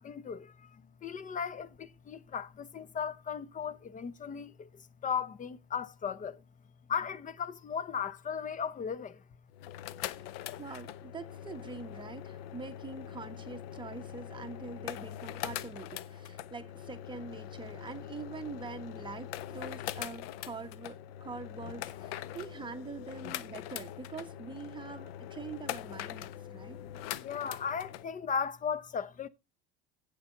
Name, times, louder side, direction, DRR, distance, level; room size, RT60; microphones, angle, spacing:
voice 1, 0.0-6.4 6.9-9.2 26.7-29.3, left 7 dB, 25° left, 0.9 m, -37 dB
sound 1, 9.5-28.0, left 11 dB, 75° left, 0.8 m, -42 dB
voice 2, 10.6-26.8, right 4 dB, 15° right, 1.4 m, -44 dB
11.0 x 8.4 x 3.9 m
supercardioid pair, 105°, 30 cm